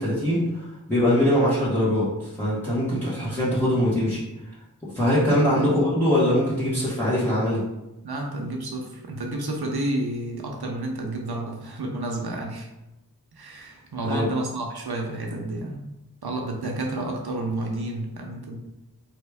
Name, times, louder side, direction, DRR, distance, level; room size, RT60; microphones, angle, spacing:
voice 1, 0.0-2.1 2.4-4.2 4.9-7.6 14.0-14.3, left 1 dB, 5° left, -11 dB, 1.4 m, -22 dB
voice 2, 5.3-5.7 8.0-12.7 13.3-15.8 16.2-18.6, right 2 dB, 85° right, 1 dB, 0.7 m, -30 dB
3.6 x 3.0 x 3.4 m, 0.95 s
wide cardioid pair, 40°, 37 cm